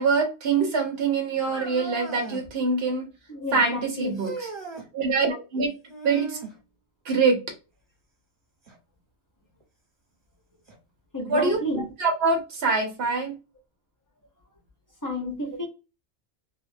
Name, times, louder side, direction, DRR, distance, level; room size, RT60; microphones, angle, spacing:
voice 1, 0.0-3.1 3.5-4.5 4.9-5.7 6.0-6.4 7.0-7.4 11.3-13.3, right 4 dB, 65° right, 1.0 m, -24 dB
sound 1, 1.5-2.5 4.1-4.9 5.9-6.6 8.7-8.8 9.6-9.7 10.7-10.8, right 3 dB, 25° right, 1.1 m, -37 dB
voice 2, 3.3-4.2 11.1-11.8 15.0-15.6, left 1 dB, 20° left, 0.7 m, -31 dB
3.0 x 2.2 x 2.5 m
omnidirectional pair, 1.2 m